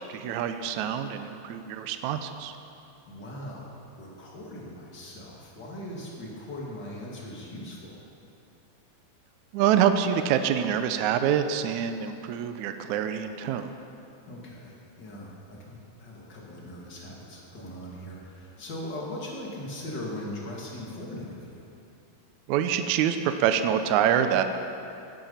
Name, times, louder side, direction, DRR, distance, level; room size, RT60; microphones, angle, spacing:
voice 1, 0.1-2.5 9.5-13.7 22.5-24.4, right 9 dB, 80° right, 8 dB, 1.7 m, -26 dB
voice 2, 3.1-8.0 14.3-21.7, left 1 dB, 30° left, -4 dB, 2.6 m, -40 dB
17.5 x 10.5 x 5.7 m, 2.7 s
omnidirectional pair, 4.1 m